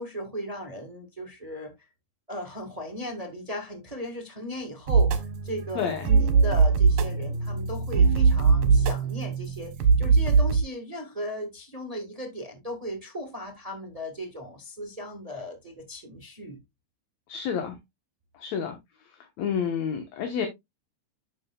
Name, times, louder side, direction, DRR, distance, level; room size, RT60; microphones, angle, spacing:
voice 1, 0.0-1.7 2.3-16.6, equal, 65° right, 0.3 m, -37 dB
sound 1, 4.9-10.6, right 5 dB, 85° right, 3.0 m, -21 dB
voice 2, 5.8-6.1 17.3-17.8 18.3-18.8 19.0-20.5, left 7 dB, 60° left, 2.2 m, -30 dB
10.5 x 6.5 x 2.3 m
omnidirectional pair, 4.0 m